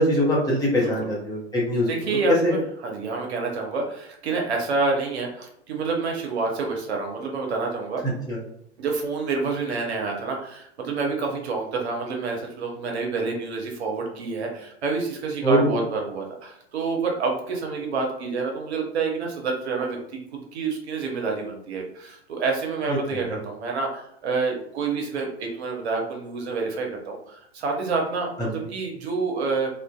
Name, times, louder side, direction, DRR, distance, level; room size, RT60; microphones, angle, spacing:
voice 1, 0.0-1.9 2.3-2.5 8.0-8.4 15.4-15.8 22.9-23.0 28.4-28.5, equal, 10° left, -5 dB, 0.8 m, -22 dB
voice 2, 1.9-8.0 8.8-29.7, right 4 dB, 70° right, 1 dB, 0.7 m, -28 dB
2.5 x 2.2 x 2.2 m, 0.73 s
figure-of-eight pair, 95°, 34 cm